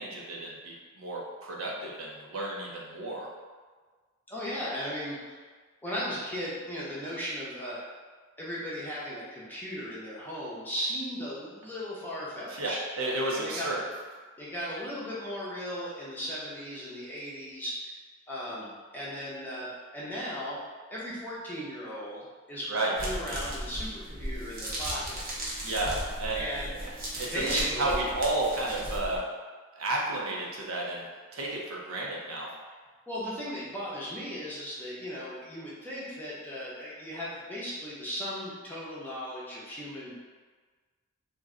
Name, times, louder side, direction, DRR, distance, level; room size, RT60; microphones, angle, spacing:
voice 1, 0.0-3.3 12.5-13.8 22.7-22.9 25.6-26.4 26.7-29.2 29.7-31.1 31.3-32.5, right 2 dB, 85° right, -3 dB, 0.6 m, -32 dB
voice 2, 4.3-5.2 5.8-7.8 8.4-12.8 13.3-13.7 14.4-17.9 18.3-20.6 20.9-25.2 26.3-26.7 27.3-28.1 33.1-40.2, equal, 10° left, -8 dB, 0.6 m, -36 dB
sound 1, 23.0-29.2, right 1 dB, 45° right, 0.7 m, -36 dB
2.5 x 2.1 x 3.7 m, 1.4 s
head